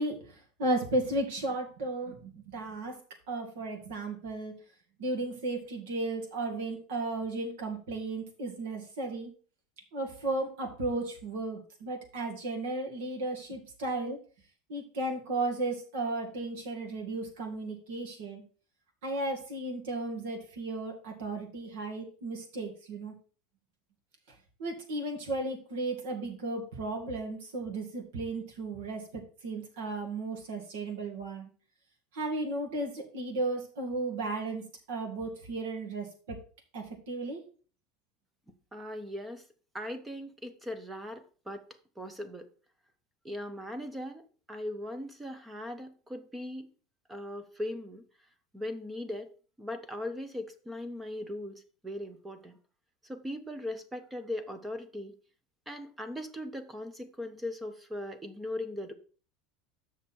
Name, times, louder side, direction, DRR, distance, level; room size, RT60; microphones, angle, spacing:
voice 1, 0.0-3.0 3.3-4.5 5.0-9.3 9.9-14.2 14.7-18.4 19.0-23.1 24.6-31.5 32.1-36.4 36.7-37.4, right 2 dB, 80° right, 1 dB, 2.2 m, -34 dB
voice 2, 38.7-39.4 39.7-41.6 42.0-42.5 43.2-46.7 47.1-48.0 48.5-49.3 49.6-52.6 53.0-55.2 55.7-58.9, left 1 dB, 5° right, 10 dB, 0.5 m, -39 dB
7.2 x 6.2 x 4.3 m, 0.40 s
supercardioid pair, 180°, 0 cm